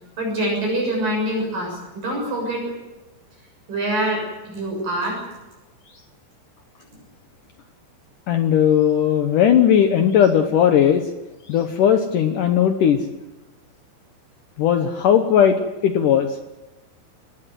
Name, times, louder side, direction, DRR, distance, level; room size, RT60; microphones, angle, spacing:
voice 1, 0.2-2.6 3.7-5.2, right 1 dB, 50° right, -1 dB, 8.5 m, -25 dB
voice 2, 8.3-11.0 11.5-13.0 14.6-16.3, left 9 dB, 75° left, 7 dB, 1.9 m, -17 dB
22.0 x 19.0 x 7.9 m, 1.1 s
omnidirectional pair, 5.3 m